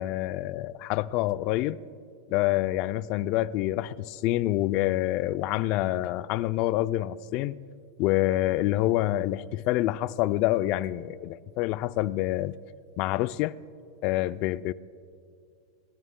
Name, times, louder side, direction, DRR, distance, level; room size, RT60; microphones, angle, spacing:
voice 1, 0.0-1.8 2.3-7.6 8.0-12.6 13.0-13.6 14.0-14.7, left 15 dB, 45° left, 0.4 m, -27 dB
28.5 x 14.0 x 2.2 m
hypercardioid pair, 125°, 2 cm